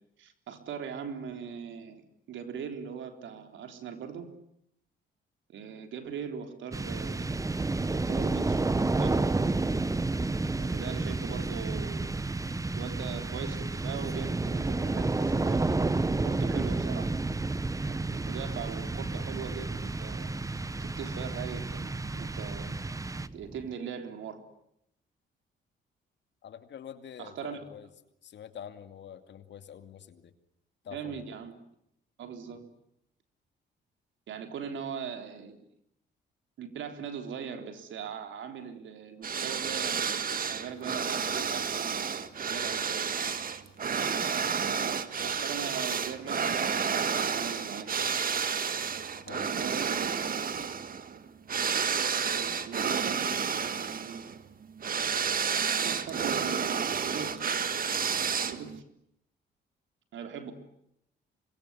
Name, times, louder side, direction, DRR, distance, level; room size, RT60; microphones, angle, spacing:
voice 1, 0.2-2.0 2.3-4.3 5.5-7.4 7.9-8.6 9.0-9.3 10.6-12.2 12.7-15.8 16.2-17.1 17.9-20.3 20.8-22.7 23.3-24.4 27.2-27.6 30.9-31.5 32.2-32.6 34.3-35.7 36.6-43.1 45.2-47.0 47.3-48.0 49.3-50.4 52.0-53.4 53.8-54.2 55.8-58.0 58.5-58.8 60.1-60.5, right 7 dB, 75° right, 7 dB, 3.8 m, -40 dB
sound 1, 6.7-23.7, right 3 dB, 15° right, 1.0 m, -30 dB
voice 2, 26.4-27.9 28.2-30.3 30.8-31.2 49.3-49.6, left 8 dB, 65° left, 9 dB, 2.5 m, -46 dB
sound 2, 39.2-58.8, right 6 dB, 45° right, 1.8 m, -31 dB
26.0 x 22.0 x 9.7 m, 0.77 s
cardioid pair, 90°, 20 cm